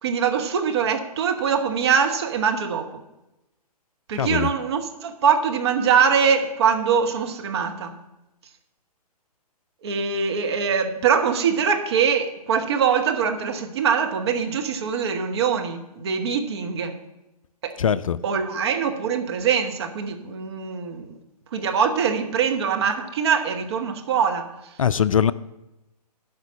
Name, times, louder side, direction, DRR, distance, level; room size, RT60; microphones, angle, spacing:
voice 1, 0.0-3.0 4.1-7.9 9.8-17.0 17.6-17.8 18.2-21.1 21.5-24.5, right 6 dB, 40° right, 5 dB, 1.1 m, -23 dB
voice 2, 4.2-4.5 17.8-18.2 24.8-25.3, left 8 dB, 55° left, 16 dB, 0.4 m, -21 dB
11.5 x 5.0 x 7.3 m, 0.95 s
figure-of-eight pair, 130°, 21 cm